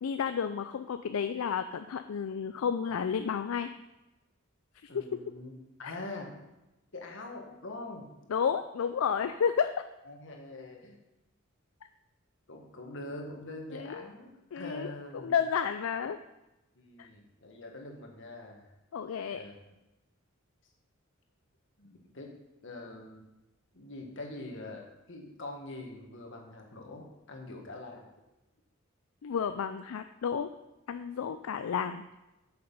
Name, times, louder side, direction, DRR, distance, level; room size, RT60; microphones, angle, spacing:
voice 1, 0.0-3.7 4.8-5.0 8.3-9.8 13.7-14.0 14.5-16.2 17.0-17.1 18.9-19.4 29.2-30.5 30.9-32.0, left 7 dB, 80° left, 10 dB, 0.4 m, -31 dB
voice 2, 4.9-5.5 5.8-6.4 6.9-8.2 10.1-11.0 12.5-14.3 14.5-15.4 16.8-18.7 19.3-19.5 21.8-22.3 22.6-23.3 23.7-28.1, left 2 dB, 65° left, 1 dB, 1.7 m, -44 dB
8.6 x 6.7 x 5.4 m, 0.98 s
head